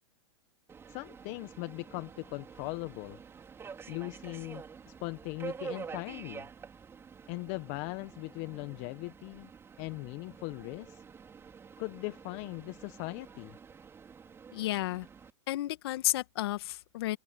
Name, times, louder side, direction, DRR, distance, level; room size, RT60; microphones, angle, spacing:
Subway metro underground, 0.7-15.3, right 6 dB, 15° right, 5.0 m, -48 dB
voice 1, 0.9-3.2 3.9-6.4 7.3-9.5 9.8-11.0 11.8-13.6, left 25 dB, 40° left, 1.3 m, -39 dB
voice 2, 14.5-15.1 15.5-17.2, left 16 dB, 60° left, 2.3 m, -32 dB
open air
hypercardioid pair, 125°, 15 cm